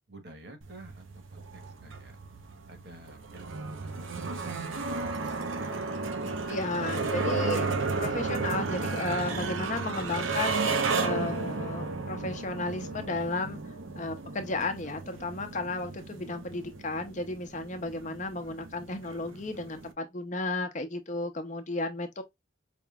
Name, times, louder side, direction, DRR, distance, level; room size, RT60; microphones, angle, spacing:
voice 1, 0.1-1.0 1.3-2.2 2.7-5.7 6.1-6.6, right 2 dB, 55° right, 1.2 m, -49 dB
sound 1, 0.6-19.9, right 3 dB, 80° right, 0.8 m, -33 dB
voice 2, 6.5-7.7 8.0-13.6 14.0-22.2, left 2 dB, 40° left, 0.7 m, -34 dB
5.1 x 3.0 x 2.3 m
head